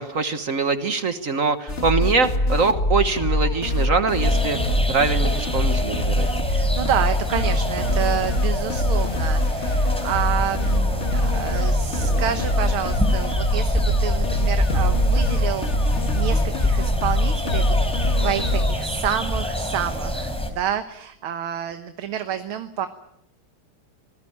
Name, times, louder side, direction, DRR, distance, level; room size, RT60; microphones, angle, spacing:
voice 1, 0.0-6.3, right 4 dB, 45° right, 10 dB, 1.5 m, -23 dB
sound 1, 1.7-18.8, left 1 dB, 35° left, 1.9 m, -23 dB
sound 2, 4.2-20.5, equal, ahead, 3.9 m, -27 dB
voice 2, 6.4-17.7 18.2-22.9, right 9 dB, 70° right, 9 dB, 1.9 m, -29 dB
26.0 x 19.5 x 8.7 m, 0.75 s
omnidirectional pair, 2.4 m